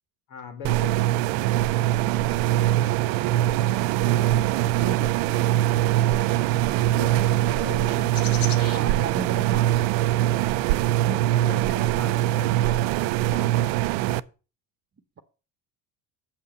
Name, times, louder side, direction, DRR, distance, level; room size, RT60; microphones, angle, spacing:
voice 1, 0.3-1.0 6.7-8.2 11.0-13.7, left 5 dB, 70° left, 6 dB, 3.2 m, -41 dB
sound 1, 0.6-14.2, right 14 dB, 75° right, 0.6 m, -22 dB
voice 2, 4.0-5.6 8.7-9.9 11.0-11.2, right 5 dB, 30° right, 8 dB, 1.1 m, -36 dB
sound 2, 5.3-11.6, left 7 dB, 45° left, 1.4 m, -44 dB
7.8 x 5.7 x 6.9 m, 0.34 s
supercardioid pair, 80°, 47 cm